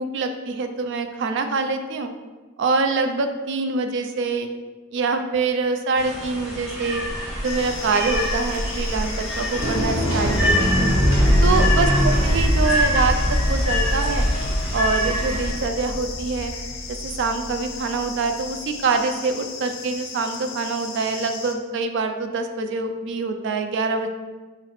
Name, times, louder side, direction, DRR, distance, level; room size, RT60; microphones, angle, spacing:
voice 1, 0.0-2.1 2.6-4.5 4.9-7.0 7.4-10.9 11.4-13.2 13.5-14.3 14.7-16.5 17.0-24.1, right 4 dB, 60° right, 7 dB, 0.3 m, -25 dB
sound 1, 6.0-15.5, left 1 dB, 5° right, 0.9 m, -27 dB
sound 2, 7.4-21.5, left 4 dB, 70° left, 0.5 m, -36 dB
sound 3, 9.6-17.6, equal, 85° right, 1.0 m, -22 dB
4.0 x 2.1 x 4.1 m, 1.3 s
head